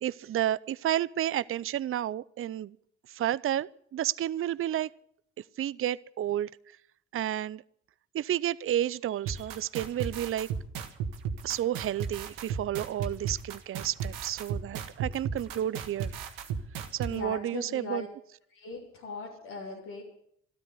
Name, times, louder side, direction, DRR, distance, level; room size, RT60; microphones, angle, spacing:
voice 1, 0.0-2.8 3.1-4.9 5.6-6.5 7.1-7.6 8.1-10.5 11.4-16.1 16.9-18.1, right 11 dB, 40° right, 0.5 m, -31 dB
sound 1, 9.3-17.1, right 7 dB, 80° right, 1.5 m, -34 dB
voice 2, 17.1-18.1 18.5-20.0, left 3 dB, 85° left, 3.2 m, -39 dB
13.5 x 13.0 x 8.2 m
hypercardioid pair, 50°, 33 cm